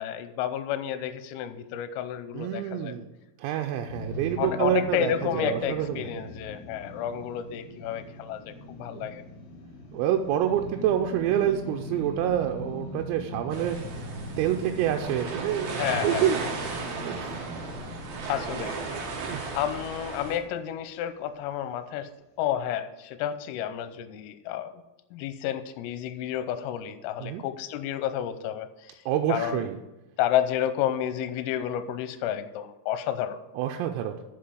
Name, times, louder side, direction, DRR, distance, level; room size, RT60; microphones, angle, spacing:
voice 1, 0.0-3.0 4.4-9.2 15.8-16.3 17.2-17.5 18.3-18.8 19.5-22.1 22.4-24.8 25.1-29.0 29.3-29.7 30.2-33.4, left 10 dB, 85° left, 11 dB, 3.3 m, -31 dB
voice 2, 2.3-3.0 3.4-6.1 8.9-9.1 9.9-13.8 14.4-17.2 19.2-19.4 27.2-27.4 29.1-29.8 33.6-34.1, right 10 dB, 90° right, 3 dB, 3.4 m, -27 dB
sound 1, 3.9-21.1, left 1 dB, 55° left, 3.2 m, -41 dB
sound 2, 13.5-20.4, right 4 dB, 60° right, 2.6 m, -35 dB
7.3 x 6.7 x 7.8 m, 1.0 s
omnidirectional pair, 6.0 m